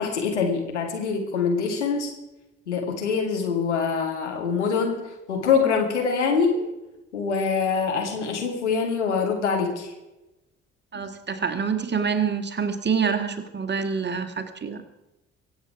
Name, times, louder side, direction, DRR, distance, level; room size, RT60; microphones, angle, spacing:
voice 1, 0.0-2.1 2.7-5.0 5.3-6.7 7.1-9.9, left 5 dB, 80° left, 1 dB, 2.1 m, -24 dB
voice 2, 10.9-14.8, right 6 dB, 30° right, 8 dB, 1.9 m, -26 dB
23.5 x 8.1 x 4.7 m, 0.97 s
figure-of-eight pair, 45°, 34 cm